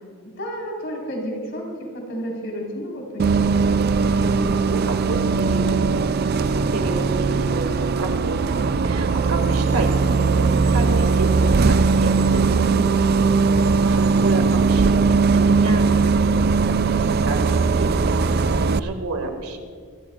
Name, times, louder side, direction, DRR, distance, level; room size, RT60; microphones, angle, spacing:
voice 1, 0.4-3.4, equal, 55° left, -1 dB, 4.3 m, -32 dB
Bus, 3.2-18.8, right 4 dB, 45° right, 0.4 m, -19 dB
voice 2, 4.6-5.8 6.4-8.5 8.8-13.1 13.8-16.9 17.3-18.2 18.4-19.6, right 2 dB, 85° right, 5 dB, 2.1 m, -30 dB
26.0 x 15.5 x 2.5 m, 2.2 s
head